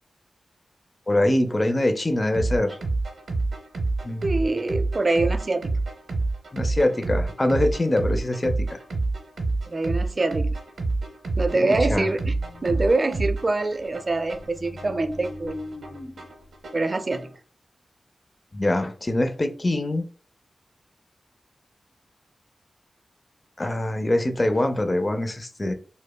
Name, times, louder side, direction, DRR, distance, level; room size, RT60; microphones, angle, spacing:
voice 1, 1.1-2.8 4.0-4.4 6.5-8.8 11.5-12.1 18.5-20.1 23.6-25.7, left 1 dB, 30° left, 7 dB, 0.4 m, -24 dB
sound 1, 2.3-17.4, right 3 dB, 75° right, 0.8 m, -28 dB
voice 2, 4.2-5.7 9.7-10.6 11.4-12.3 12.6-15.6 16.7-17.3, right 2 dB, 40° right, 9 dB, 0.4 m, -24 dB
sound 2, 11.6-16.7, left 2 dB, 70° left, 1.4 m, -42 dB
5.0 x 2.1 x 2.2 m, 0.39 s
wide cardioid pair, 80°, 0 cm